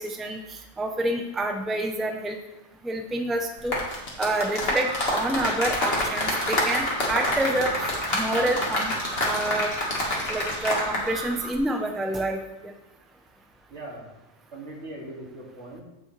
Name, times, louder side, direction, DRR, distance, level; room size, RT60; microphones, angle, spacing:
voice 1, 0.0-2.4 2.8-3.8 4.2-8.9 9.2-9.7 10.3-12.4, right 1 dB, ahead, 3 dB, 0.7 m, -28 dB
sound 1, 3.6-11.1 11.3-11.6, left 1 dB, 55° left, 2.2 m, -27 dB
sound 2, 4.6-11.5, right 2 dB, 50° right, 1.4 m, -37 dB
voice 2, 13.7-14.1 14.5-15.8, right 1 dB, 80° right, -4 dB, 2.9 m, -40 dB
16.0 x 6.2 x 3.3 m, 0.94 s
omnidirectional pair, 1.2 m